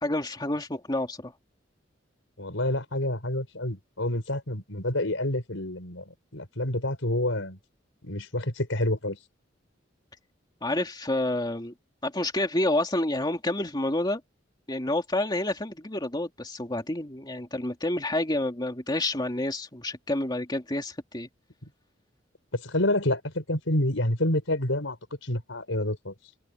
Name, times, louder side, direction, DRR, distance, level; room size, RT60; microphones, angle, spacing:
voice 1, 0.0-1.3 10.6-11.7 12.0-14.2 14.7-21.3, left 1 dB, 20° left, 2.8 m, -29 dB
voice 2, 2.4-6.0 6.3-7.6 8.0-9.2 22.5-25.0 25.2-26.1, left 1 dB, 85° left, 4.6 m, -28 dB
head